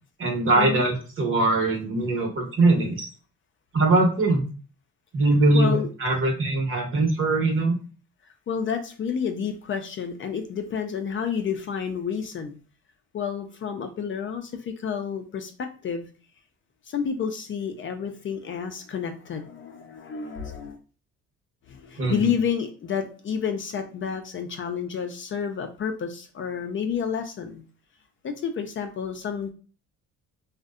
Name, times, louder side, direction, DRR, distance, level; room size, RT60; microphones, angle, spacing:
voice 1, 0.2-3.1 3.7-4.4 5.1-7.8 22.0-22.2, right 2 dB, 45° right, 1 dB, 0.9 m, -21 dB
voice 2, 5.5-5.9 8.5-12.6 13.1-15.5 15.8-16.1 16.9-20.8 21.7-27.6 28.2-29.5, left 7 dB, 40° left, 6 dB, 0.4 m, -30 dB
2.6 x 2.1 x 2.4 m, 0.37 s
cardioid pair, 90°, 30 cm